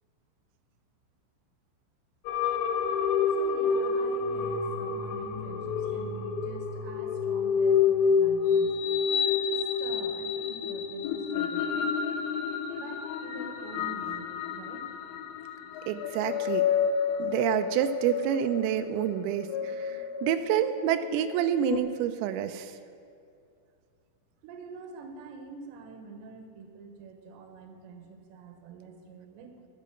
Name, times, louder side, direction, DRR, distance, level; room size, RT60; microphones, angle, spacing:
sound 1, 2.3-21.8, left 6 dB, 85° left, 2.6 m, -29 dB
voice 1, 3.4-8.8 9.2-12.1 12.7-14.9 24.4-29.5, right 4 dB, 70° right, 5 dB, 3.1 m, -46 dB
voice 2, 15.9-16.7 17.2-22.7, right 10 dB, 90° right, 9 dB, 3.3 m, -28 dB
12.0 x 7.5 x 7.6 m, 2.5 s
omnidirectional pair, 5.9 m